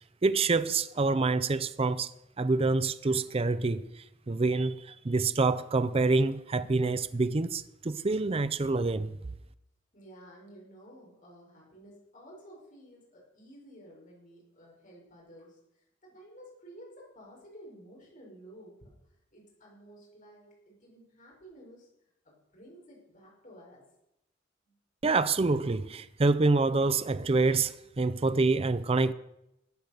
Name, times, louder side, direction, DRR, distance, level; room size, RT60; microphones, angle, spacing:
voice 1, 0.2-2.1 2.4-3.8 4.3-9.1 25.0-29.1, right 3 dB, 30° right, 0.5 m, -26 dB
voice 2, 9.9-18.9 19.3-21.9 22.2-23.8 24.6-24.8, equal, 40° left, 5.5 m, -53 dB
14.0 x 8.9 x 6.8 m
head